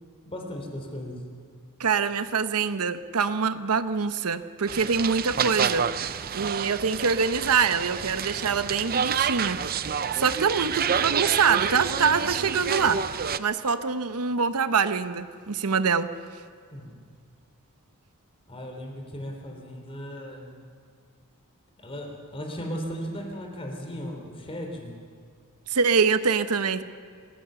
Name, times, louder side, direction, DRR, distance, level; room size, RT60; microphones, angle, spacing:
voice 1, 0.3-1.2 16.7-17.0 18.5-20.6 21.8-24.9, equal, 25° left, 2 dB, 3.5 m, -36 dB
voice 2, 1.8-5.8 6.3-9.6 10.1-13.0 13.4-16.1 25.7-26.8, right 5 dB, 80° right, 11 dB, 0.9 m, -24 dB
sound 1, 4.7-13.4, right 7 dB, 45° right, 0.6 m, -28 dB
27.0 x 16.0 x 6.9 m, 2.1 s
head